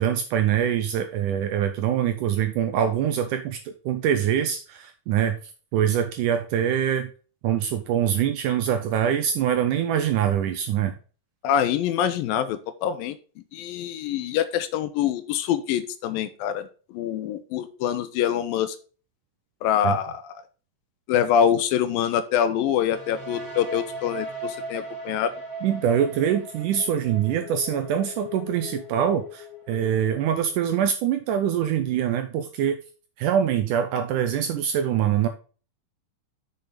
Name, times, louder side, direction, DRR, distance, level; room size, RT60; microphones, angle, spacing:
voice 1, 0.0-5.4 5.7-7.1 7.4-10.9 19.8-20.0 25.6-32.8 33.2-35.3, right 9 dB, 80° right, 8 dB, 1.9 m, -24 dB
voice 2, 11.4-13.2 13.5-18.8 19.6-20.3 21.1-25.3, left 9 dB, 80° left, 11 dB, 2.3 m, -25 dB
sound 1, 22.9-30.7, equal, 40° left, 3.6 m, -38 dB
7.0 x 6.6 x 3.8 m, 0.37 s
omnidirectional pair, 4.3 m